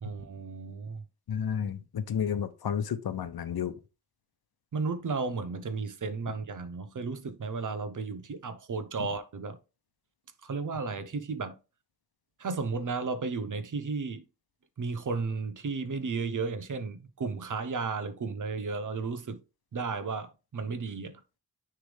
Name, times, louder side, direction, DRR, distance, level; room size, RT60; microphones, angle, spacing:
voice 1, 0.0-1.0 4.7-9.6 10.4-11.6 12.4-14.2 14.8-19.4 19.7-21.2, right 4 dB, 50° right, 0.8 m, -34 dB
voice 2, 1.3-3.8, left 8 dB, 70° left, 0.8 m, -31 dB
9.6 x 3.4 x 3.4 m
wide cardioid pair, 145°, 38 cm